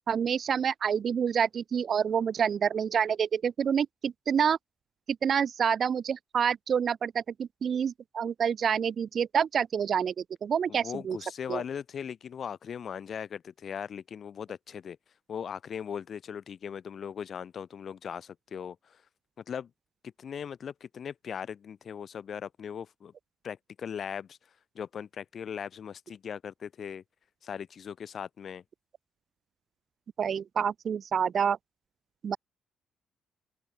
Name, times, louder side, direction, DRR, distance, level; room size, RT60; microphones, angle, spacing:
voice 1, 0.1-4.6 5.1-11.2 11.5-11.6 30.2-31.6 32.2-32.4, right 7 dB, 55° right, 0.6 m, -28 dB
voice 2, 10.7-15.0 15.3-19.0 19.5-19.7 20.0-23.1 23.4-24.4 24.8-27.0 27.4-28.6, left 7 dB, 55° left, 1.8 m, -39 dB
open air
cardioid pair, 90°, 0 cm